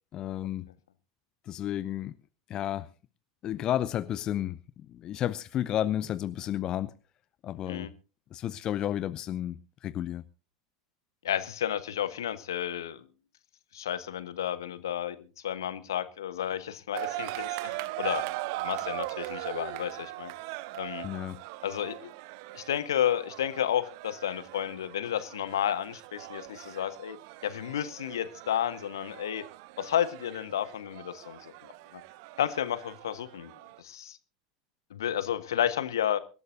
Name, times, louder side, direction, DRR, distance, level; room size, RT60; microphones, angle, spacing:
voice 1, 0.1-0.7 1.5-2.2 2.5-2.9 3.4-4.6 4.9-6.9 7.4-7.9 8.3-10.2 21.0-21.4, left 11 dB, 35° left, 0.6 m, -32 dB
voice 2, 11.2-13.1 13.7-20.3 20.7-21.0 21.6-22.1 22.5-27.2 27.4-29.4 29.8-32.0 32.4-33.5 33.8-34.2 34.9-36.2, left 10 dB, 65° left, 1.1 m, -32 dB
sound 1, 16.9-33.8, right 18 dB, 50° right, 0.6 m, -40 dB
25.0 x 12.5 x 2.6 m
figure-of-eight pair, 80°, 2 cm